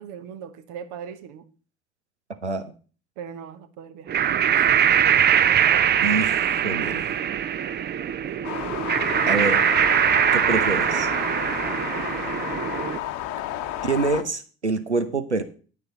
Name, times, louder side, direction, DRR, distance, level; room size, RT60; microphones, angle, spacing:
voice 1, 0.0-1.5 3.2-4.7 11.9-12.3, right 8 dB, 60° right, 1.1 m, -40 dB
sound 1, 4.1-13.0, right 9 dB, 30° right, 0.6 m, -22 dB
voice 2, 6.0-7.1 9.3-9.6 10.3-11.1 13.8-15.4, right 3 dB, 90° right, 0.7 m, -26 dB
sound 2, 8.4-14.2, left 13 dB, 60° left, 1.0 m, -31 dB
10.5 x 9.2 x 4.0 m
figure-of-eight pair, 50°, 33 cm